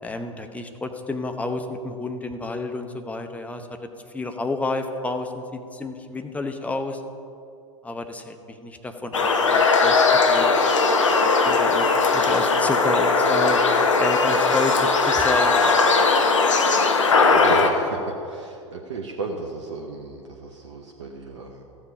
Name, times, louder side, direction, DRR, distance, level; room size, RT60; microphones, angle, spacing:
voice 1, 0.0-3.7 4.1-7.0 7.8-10.0 10.3-10.5 11.1-13.6 14.0-15.5, left 2 dB, 10° left, 5 dB, 0.8 m, -30 dB
sound 1, 9.1-17.7, left 4 dB, 70° left, 1.0 m, -19 dB
voice 2, 17.3-21.6, right 4 dB, 65° right, 1 dB, 1.0 m, -35 dB
14.0 x 7.7 x 5.2 m, 2.6 s
figure-of-eight pair, 90°, 16 cm